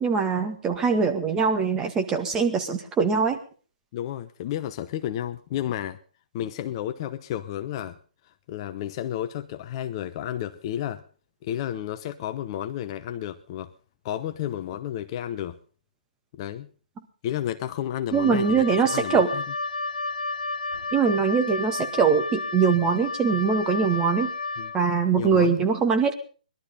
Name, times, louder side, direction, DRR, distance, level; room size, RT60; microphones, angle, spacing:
voice 1, 0.0-3.4 18.1-19.3 20.9-24.3 24.7-26.1, right 5 dB, 15° right, 5 dB, 2.0 m, -22 dB
voice 2, 3.9-6.0 6.3-8.0 8.3-11.0 11.4-13.7 14.0-15.6 16.4-16.7 17.2-18.6 18.9-19.4 24.6-24.7 25.1-25.6, left 11 dB, 35° left, 9 dB, 0.9 m, -32 dB
Wind instrument woodwind instrument, 18.1-24.8, left 3 dB, 85° left, 1.3 m, -32 dB
21.0 x 12.0 x 5.4 m, 0.40 s
hypercardioid pair, 145°, 5 cm